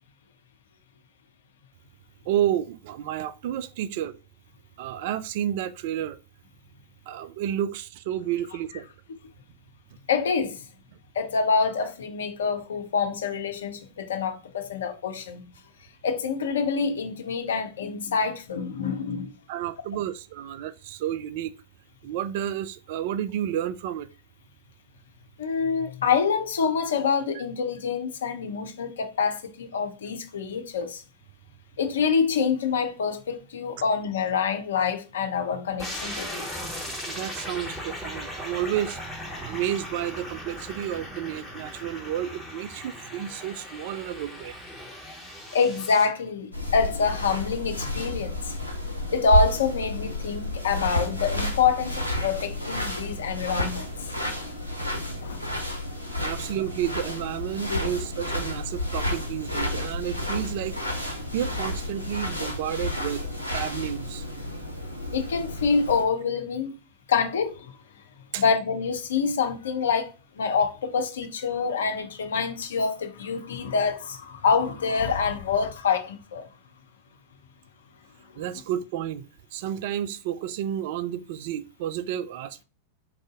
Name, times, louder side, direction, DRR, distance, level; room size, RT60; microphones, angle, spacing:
voice 1, 2.3-4.2 4.8-6.2 7.1-8.9 19.5-21.5 22.0-24.1 37.0-39.0 39.4-44.6 56.2-64.2 68.3-68.4 78.4-82.6, right 11 dB, 50° right, 0.3 m, -31 dB
voice 2, 10.1-10.6 11.1-15.4 16.0-19.3 25.4-31.0 31.8-36.4 45.5-48.5 49.1-54.0 55.2-55.4 56.2-56.3 57.7-57.8 65.1-66.8 67.1-67.7 68.3-76.5, left 5 dB, 65° left, 0.6 m, -26 dB
sound 1, 35.8-46.1, equal, 5° right, 1.5 m, -38 dB
sound 2, 46.5-66.0, left 1 dB, 90° right, 0.8 m, -31 dB
4.7 x 2.6 x 3.6 m
figure-of-eight pair, 90°, 0 cm